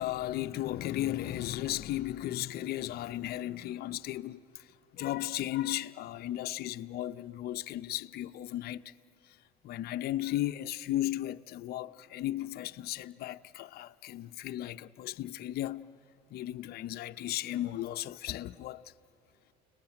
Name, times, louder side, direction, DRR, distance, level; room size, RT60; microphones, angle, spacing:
voice 1, 0.0-4.7 4.9-8.9 9.6-15.9 16.3-18.8, left 14 dB, 55° left, 0.7 m, -35 dB
29.5 x 20.0 x 9.1 m
supercardioid pair, 95°, 19 cm